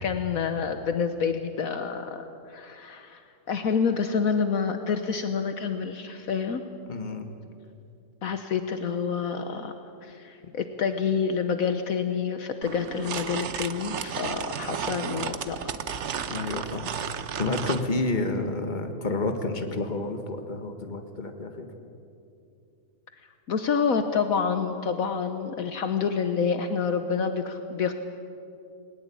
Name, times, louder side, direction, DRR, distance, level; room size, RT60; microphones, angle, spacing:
voice 1, 0.0-3.2 3.5-6.6 8.2-9.7 10.0-15.7 23.5-27.9, left 6 dB, 65° left, 8 dB, 1.4 m, -28 dB
voice 2, 6.9-7.3 16.3-17.1 17.4-21.7, left 2 dB, 30° left, 6 dB, 1.7 m, -30 dB
sound 1, 12.6-17.9, right 7 dB, 55° right, 1.0 m, -33 dB
20.0 x 19.5 x 8.6 m, 2.6 s
omnidirectional pair, 1.6 m